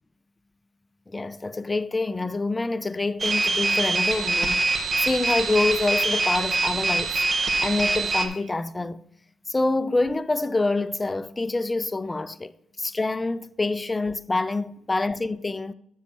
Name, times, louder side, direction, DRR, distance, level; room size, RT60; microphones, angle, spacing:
voice 1, 1.1-7.2 7.6-9.0 9.5-12.5 12.8-15.7, left 2 dB, 20° left, 0.5 m, -26 dB
sound 1, 3.2-8.3, right 3 dB, 45° right, 1.3 m, -24 dB
7.2 x 6.4 x 5.6 m
supercardioid pair, 65°, 0 cm